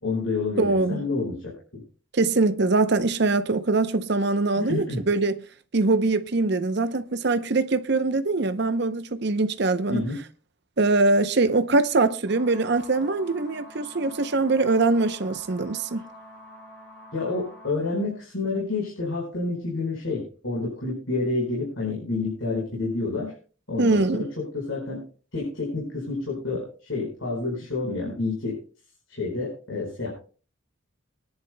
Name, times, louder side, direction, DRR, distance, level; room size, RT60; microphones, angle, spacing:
voice 1, 0.0-1.8 4.6-5.0 9.9-10.2 17.1-23.3 23.7-25.0 25.3-28.6 29.1-30.1, left 3 dB, 70° left, 4.9 m, -29 dB
voice 2, 0.6-1.0 2.1-5.4 5.7-10.0 10.8-16.0 23.8-24.2, right 3 dB, 55° right, 0.7 m, -23 dB
sound 1, 12.3-17.7, equal, 10° left, 6.5 m, -46 dB
23.0 x 10.5 x 2.2 m
head